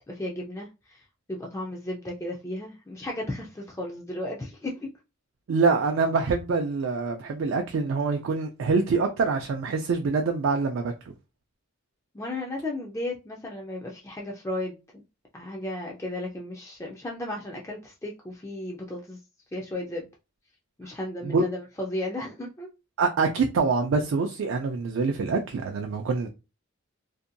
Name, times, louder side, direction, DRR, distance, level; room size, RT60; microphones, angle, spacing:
voice 1, 0.1-1.0 1.3-4.9 12.1-15.0 15.3-19.2 19.5-20.0 20.8-22.7, left 1 dB, 15° left, 0.3 m, -34 dB
voice 2, 5.5-10.9 21.2-21.5 23.0-26.3, right 4 dB, 70° right, 0.4 m, -25 dB
2.6 x 2.2 x 2.5 m
head